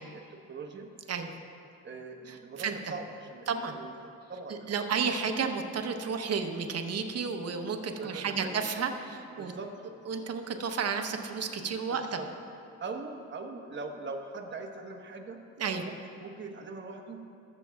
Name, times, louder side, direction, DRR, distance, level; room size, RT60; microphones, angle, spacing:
voice 1, 0.0-0.9 1.8-5.0 5.4-5.5 7.9-8.8 9.4-9.7 11.9-12.3 12.8-17.2, right 3 dB, 40° right, 3 dB, 1.2 m, -42 dB
voice 2, 2.3-2.7 3.5-3.7 4.7-9.5 10.1-12.0 15.6-15.8, right 5 dB, 55° right, 5 dB, 1.0 m, -32 dB
21.0 x 7.4 x 2.3 m, 2.6 s
cardioid pair, 90°, 30 cm